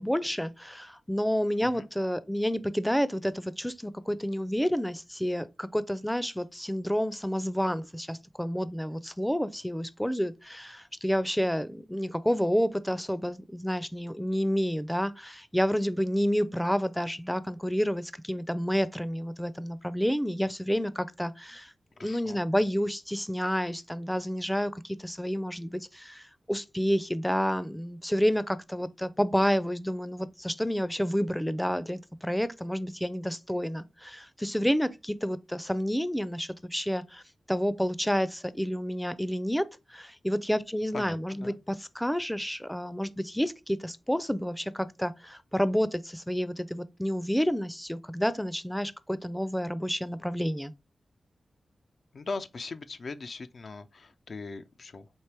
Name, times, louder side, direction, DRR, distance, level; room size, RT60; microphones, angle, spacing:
voice 1, 0.0-21.7 22.0-37.2 37.5-50.7, equal, 5° left, 0.4 m, -29 dB
voice 2, 22.0-22.5 40.9-41.6 52.1-55.1, left 3 dB, 65° left, 0.4 m, -40 dB
4.4 x 2.9 x 3.2 m
cardioid pair, 40°, 0 cm